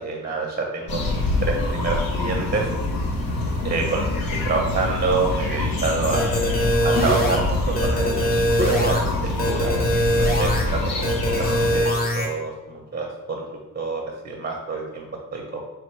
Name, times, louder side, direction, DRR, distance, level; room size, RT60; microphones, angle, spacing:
voice 1, 0.0-2.7 3.6-6.3 6.8-9.0 9.5-9.7 10.2-13.4 13.7-15.6, right 3 dB, 30° right, 1 dB, 0.5 m, -27 dB
sound 1, 0.9-11.8, left 1 dB, 80° left, 0.8 m, -25 dB
sound 2, 6.1-7.4 7.8-9.0 9.4-10.6 11.0-12.3, equal, 25° left, 0.7 m, -22 dB
4.3 x 3.2 x 3.1 m, 1.1 s
wide cardioid pair, 140°, 34 cm